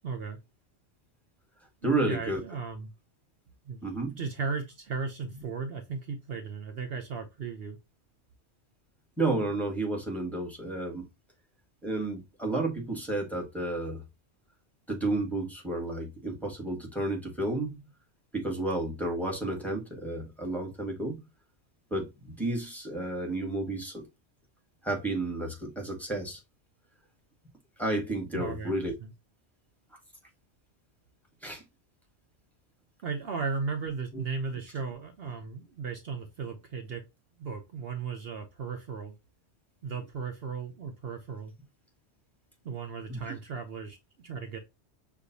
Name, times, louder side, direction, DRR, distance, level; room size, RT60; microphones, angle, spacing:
voice 1, 0.0-0.4 1.8-2.9 3.6-7.8 28.3-28.7 29.0-29.1 33.0-37.0 37.4-39.1 39.8-41.5 42.6-44.6, right 5 dB, 60° right, 0.9 m, -36 dB
voice 2, 1.8-2.4 3.8-4.2 9.2-11.0 11.8-14.0 14.9-17.8 18.3-21.3 21.9-24.1 24.8-26.4 27.8-28.9 31.4-31.6 34.1-34.2 43.1-43.3, right 2 dB, ahead, 1.4 m, -31 dB
6.4 x 2.5 x 2.7 m
omnidirectional pair, 1.2 m